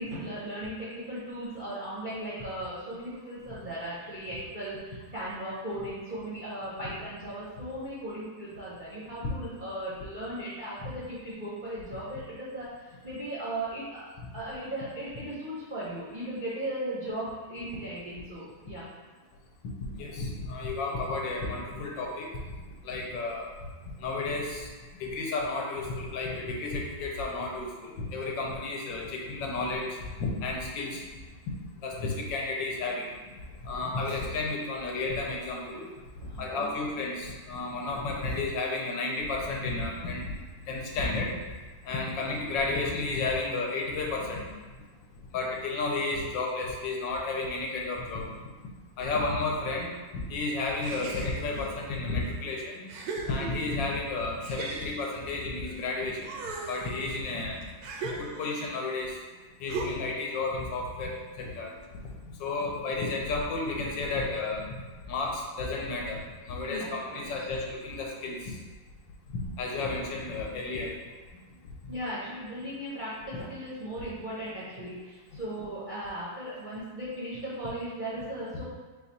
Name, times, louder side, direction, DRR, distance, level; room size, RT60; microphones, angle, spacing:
voice 1, 0.0-18.8 36.2-36.7 66.7-67.3 71.9-78.6, right 1 dB, 50° right, -10 dB, 0.6 m, -37 dB
voice 2, 19.8-22.3 22.8-23.5 24.0-24.7 25.0-31.0 31.8-33.1 33.6-35.9 36.4-40.3 40.7-41.3 41.8-44.5 45.3-48.3 49.0-52.9 53.3-56.3 56.7-57.6 58.0-59.2 59.6-61.7 62.4-64.6 65.1-68.6 69.3-71.0 71.8-71.9, left 3 dB, 80° left, -1 dB, 1.4 m, -32 dB
sound 1, 50.8-51.7 52.3-52.4 52.9-53.9 54.4-55.8 56.2-58.7 59.7-60.2, right 3 dB, 75° right, 0.9 m, -38 dB
4.0 x 2.4 x 4.0 m, 1.3 s
omnidirectional pair, 2.0 m